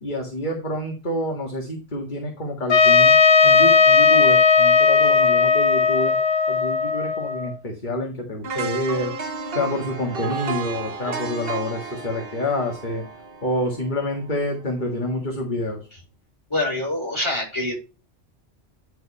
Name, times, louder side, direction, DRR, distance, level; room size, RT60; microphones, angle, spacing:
voice 1, 0.0-3.1 3.4-6.2 6.5-9.1 9.5-13.1 13.4-15.8, left 1 dB, 40° left, 1 dB, 1.9 m, -27 dB
Trumpet, 2.7-7.5, left 5 dB, 60° left, 1.3 m, -16 dB
sound 1, 8.4-14.5 14.8-15.0, right 4 dB, 55° right, 1.6 m, -32 dB
voice 2, 16.5-17.8, left 1 dB, 25° left, -5 dB, 5.6 m, -25 dB
11.0 x 4.9 x 4.2 m, 0.32 s
omnidirectional pair, 1.2 m